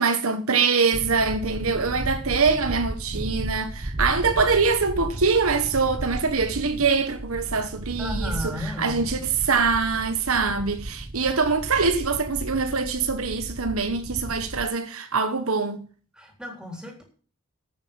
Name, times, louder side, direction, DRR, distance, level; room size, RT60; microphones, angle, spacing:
voice 1, 0.0-15.9, right 4 dB, 75° right, 1.2 m, -24 dB
sound 1, 0.9-14.7, right 1 dB, 30° right, 0.7 m, -34 dB
voice 2, 8.0-9.0 16.1-17.0, left 1 dB, 5° right, 3.8 m, -34 dB
9.1 x 8.8 x 8.9 m
head